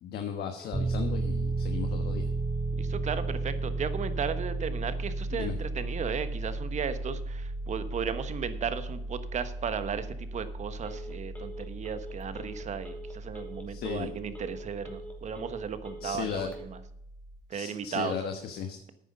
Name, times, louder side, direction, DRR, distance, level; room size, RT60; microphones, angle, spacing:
voice 1, 0.0-2.3 5.3-5.5 13.7-14.1 16.0-16.5 17.5-18.8, left 7 dB, 70° left, 6 dB, 1.3 m, -36 dB
Telephone, 0.6-16.6, right 2 dB, 10° left, 2.6 m, -48 dB
Piano, 0.7-17.4, right 2 dB, 25° right, 2.0 m, -35 dB
voice 2, 2.7-16.8 17.5-18.2, right 7 dB, 45° right, 12 dB, 1.2 m, -35 dB
10.0 x 9.2 x 5.3 m, 0.76 s
cardioid pair, 110°, 17 cm